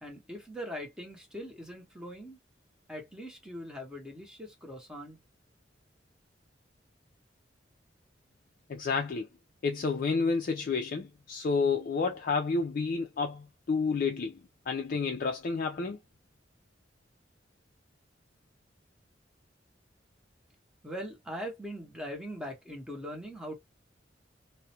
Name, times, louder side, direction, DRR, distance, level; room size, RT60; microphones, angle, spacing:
voice 1, 0.0-2.4 2.9-5.2 20.8-23.6, equal, 5° right, 0.7 m, -41 dB
voice 2, 8.7-9.3 9.6-14.4 14.7-16.0, left 4 dB, 50° left, 0.4 m, -30 dB
2.4 x 2.0 x 2.8 m
head